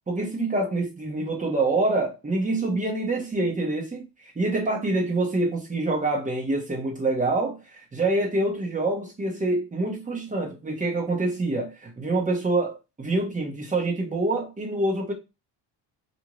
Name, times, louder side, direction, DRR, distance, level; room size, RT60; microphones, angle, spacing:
voice 1, 0.1-4.0 4.4-15.1, right 2 dB, 20° right, 0.9 m, -26 dB
2.6 x 2.5 x 3.0 m
cardioid pair, 115°, 43 cm